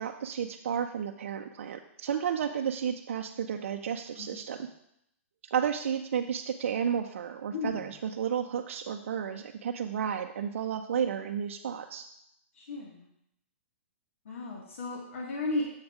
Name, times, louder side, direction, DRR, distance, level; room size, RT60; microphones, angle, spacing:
voice 1, 0.0-4.7 5.5-12.1, right 8 dB, 65° right, 4 dB, 0.5 m, -32 dB
voice 2, 7.5-7.9 12.5-13.1 14.2-15.7, left 2 dB, 70° left, -2 dB, 1.6 m, -35 dB
7.2 x 6.4 x 3.5 m, 0.76 s
hypercardioid pair, 175°, 7 cm